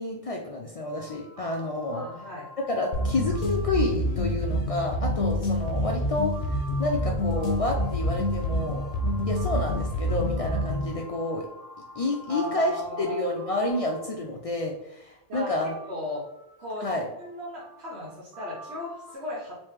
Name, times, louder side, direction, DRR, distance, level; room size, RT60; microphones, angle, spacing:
voice 1, 0.0-2.1 2.7-8.8 9.3-11.4 12.0-12.7 13.0-15.7 16.8-17.0, left 2 dB, 60° left, 0 dB, 0.4 m, -29 dB
sound 1, 0.8-14.6 15.3-19.2, right 1 dB, 45° right, 0.6 m, -47 dB
voice 2, 1.9-2.5 12.3-13.3 15.3-15.5 15.9-16.3 16.6-19.6, left 1 dB, 80° right, -5 dB, 1.1 m, -36 dB
sound 2, 2.9-11.0, left 1 dB, 75° left, 0.8 m, -27 dB
3.3 x 2.9 x 3.2 m, 0.82 s
omnidirectional pair, 1.1 m